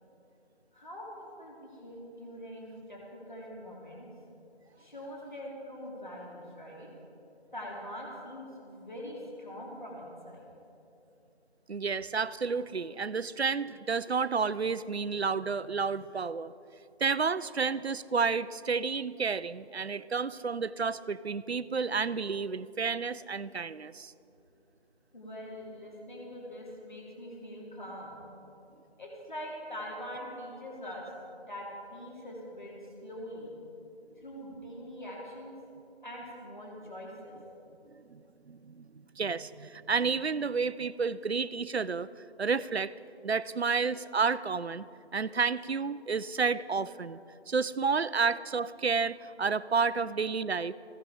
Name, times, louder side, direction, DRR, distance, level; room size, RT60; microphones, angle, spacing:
voice 1, 0.7-4.1 4.8-6.9 7.5-10.4 25.1-28.2 29.0-31.1 31.5-33.5 34.2-35.5 36.0-37.4, equal, 45° left, -3 dB, 3.2 m, -43 dB
voice 2, 11.7-16.5 17.0-24.1 38.1-38.8 39.2-42.1 42.4-42.9 43.2-44.9 45.1-47.2 47.5-50.7, right 5 dB, 70° right, 16 dB, 0.5 m, -30 dB
15.5 x 15.5 x 4.9 m, 2.8 s
figure-of-eight pair, 180°, 33 cm